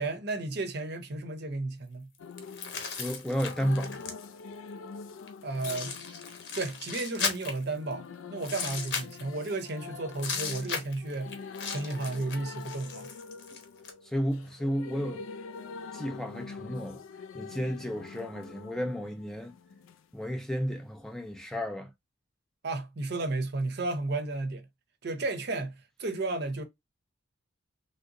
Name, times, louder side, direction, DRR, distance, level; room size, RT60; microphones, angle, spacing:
voice 1, 0.0-2.1 5.4-5.9 6.6-13.1 22.6-24.7 25.0-26.6, right 2 dB, 55° right, 0.7 m, -33 dB
sound 1, 2.2-20.0 21.3-21.4, left 5 dB, 90° left, 0.4 m, -45 dB
sound 2, 2.4-4.4 5.3-5.4 5.6-7.9 8.4-9.7 10.1-13.9, left 5 dB, 60° left, 0.8 m, -36 dB
voice 2, 3.0-4.0 14.0-15.3 15.9-17.0 17.3-19.5 20.1-21.9, equal, ahead, 0.4 m, -32 dB
3.3 x 2.8 x 2.5 m
head